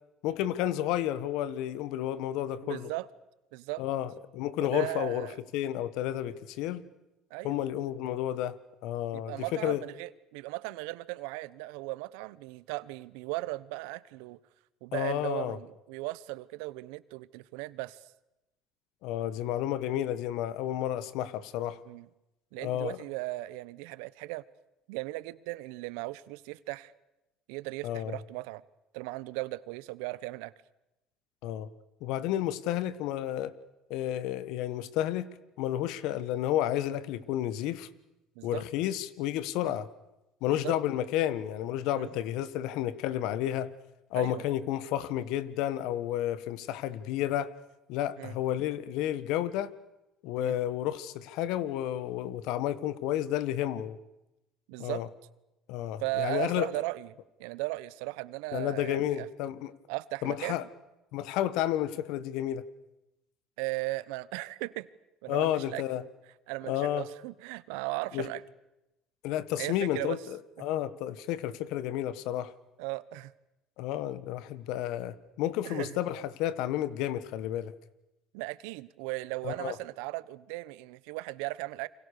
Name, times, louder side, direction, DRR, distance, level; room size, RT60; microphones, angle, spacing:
voice 1, 0.2-2.9 3.8-5.3 5.5-6.8 7.4-8.6 8.8-9.8 14.9-15.6 19.0-21.8 22.6-23.0 27.8-28.2 31.4-31.7 32.0-33.5 33.9-35.3 35.6-37.9 38.4-39.9 40.4-43.7 44.1-47.5 47.9-49.7 50.2-54.0 54.8-55.1 55.7-56.7 58.5-59.7 60.2-60.6 61.1-62.6 65.3-66.0 66.7-67.0 68.1-68.3 69.2-72.5 73.8-77.7 79.4-79.7, left 12 dB, 75° left, 16 dB, 1.5 m, -31 dB
voice 2, 2.6-3.1 3.5-3.8 4.6-5.4 7.3-7.6 9.1-14.4 14.8-18.0 21.8-22.1 22.5-24.4 24.9-26.9 27.5-28.6 28.9-30.5 38.4-38.6 39.6-39.8 40.5-40.7 42.0-42.2 44.1-44.4 48.2-48.4 50.4-50.5 54.7-55.0 56.0-57.1 57.4-59.3 59.9-60.7 63.6-64.9 65.2-65.8 66.5-68.4 69.6-70.2 72.8-73.3 75.6-76.0 78.3-81.9, right 20 dB, 85° right, 18 dB, 1.0 m, -37 dB
29.5 x 25.0 x 6.8 m, 0.94 s
supercardioid pair, 100°, 0 cm